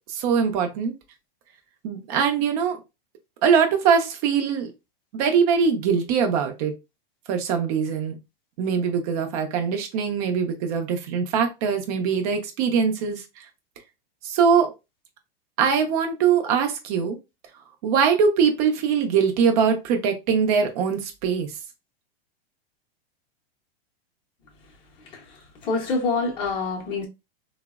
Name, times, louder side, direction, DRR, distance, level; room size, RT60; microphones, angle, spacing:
voice 1, 0.1-0.9 1.8-2.8 3.4-4.7 5.1-6.8 7.3-8.2 8.6-13.5 14.2-14.7 15.6-17.2 17.8-21.6, right 6 dB, 40° right, 0.6 m, -22 dB
voice 2, 25.6-27.1, left 3 dB, 15° left, 0.6 m, -26 dB
3.2 x 2.0 x 2.3 m
supercardioid pair, 155°, 30 cm